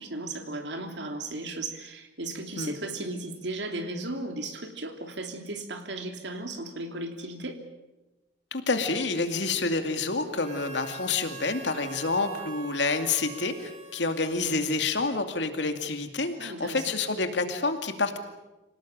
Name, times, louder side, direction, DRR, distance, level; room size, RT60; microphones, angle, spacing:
voice 1, 0.0-7.6 16.4-16.8, right 2 dB, 75° right, 5 dB, 3.1 m, -35 dB
voice 2, 8.5-18.2, left 3 dB, 80° left, 7 dB, 2.4 m, -28 dB
Harmonica, 10.3-15.2, right 4 dB, 40° right, 5.1 m, -45 dB
27.5 x 18.0 x 8.8 m, 1.1 s
head